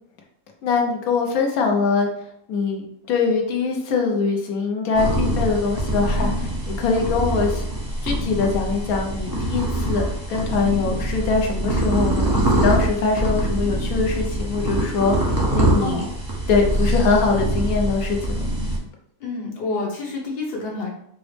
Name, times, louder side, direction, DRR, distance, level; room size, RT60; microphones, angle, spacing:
voice 1, 0.6-2.1 2.5-6.3 6.7-7.6 8.0-16.0 16.5-18.4, left 4 dB, 80° left, 1 dB, 1.1 m, -22 dB
sound 1, 4.9-18.8, right 1 dB, 20° right, 0.7 m, -24 dB
voice 2, 15.8-16.1 19.2-20.9, left 3 dB, 45° left, -2 dB, 1.0 m, -29 dB
5.0 x 2.0 x 3.2 m, 0.72 s
omnidirectional pair, 1.5 m